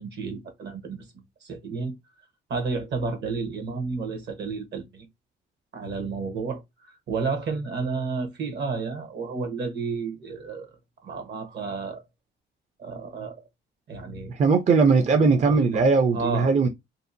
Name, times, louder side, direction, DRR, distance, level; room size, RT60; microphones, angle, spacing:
voice 1, 0.0-1.9 2.5-5.1 5.7-6.6 6.9-10.7 11.0-12.0 12.8-13.4 13.9-14.3 15.1-15.8 16.1-16.5, right 4 dB, 60° right, 0.9 m, -31 dB
voice 2, 14.3-16.7, right 4 dB, 35° right, 0.5 m, -19 dB
2.7 x 2.1 x 2.6 m
cardioid pair, 90°, 20 cm